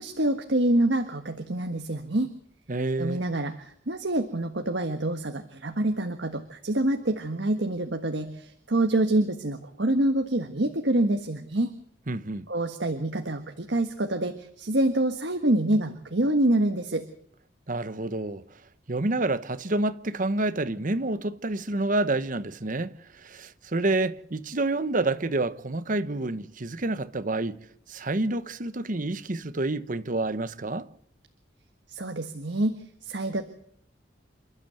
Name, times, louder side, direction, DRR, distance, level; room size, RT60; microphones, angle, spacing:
voice 1, 0.0-2.3 3.0-11.7 12.5-17.1 31.9-33.4, right 1 dB, 70° right, 1.6 m, -26 dB
voice 2, 2.7-3.2 12.1-12.5 17.7-18.6 18.9-27.6 27.9-30.9, right 2 dB, 45° right, 1.0 m, -28 dB
28.5 x 12.5 x 7.9 m
head